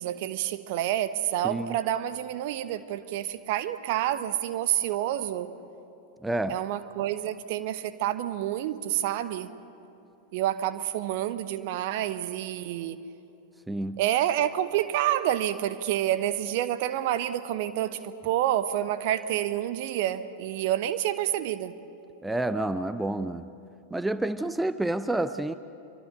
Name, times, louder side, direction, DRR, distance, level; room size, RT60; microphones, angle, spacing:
voice 1, 0.0-5.6 6.5-9.5 10.3-13.0 14.0-21.8, right 12 dB, 50° right, 1.0 m, -28 dB
voice 2, 1.4-1.8 6.2-6.6 13.7-14.0 22.2-23.5 23.9-25.5, right 2 dB, 5° right, 0.6 m, -29 dB
26.5 x 24.5 x 6.7 m
figure-of-eight pair, 90°, 0 cm